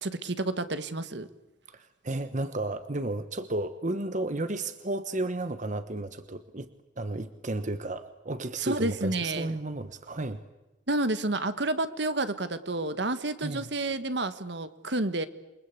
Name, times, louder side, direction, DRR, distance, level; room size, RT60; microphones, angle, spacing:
voice 1, 0.0-1.3 8.6-9.5 10.9-15.3, right 2 dB, 65° right, 11 dB, 1.5 m, -30 dB
voice 2, 1.7-6.7 7.0-10.4 13.4-13.7, right 2 dB, 40° right, 11 dB, 1.1 m, -33 dB
28.5 x 23.5 x 8.3 m, 1.0 s
head